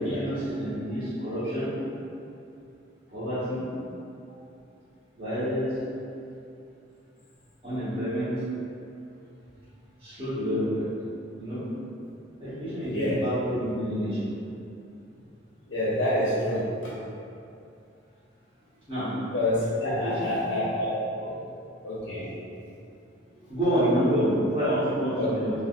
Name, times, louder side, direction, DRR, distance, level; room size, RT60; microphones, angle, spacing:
voice 1, 0.0-1.7 3.1-3.6 5.2-5.8 7.6-8.3 10.0-10.9 11.4-11.6 12.4-14.3 18.9-19.1 19.8-20.4 21.2-21.3 23.5-25.6, equal, 30° right, -16 dB, 0.9 m, -28 dB
voice 2, 12.9-13.2 15.7-16.9 19.3-21.0 21.8-22.3 25.2-25.6, left 1 dB, 60° left, -8 dB, 0.5 m, -27 dB
3.3 x 2.3 x 2.4 m, 2.6 s
head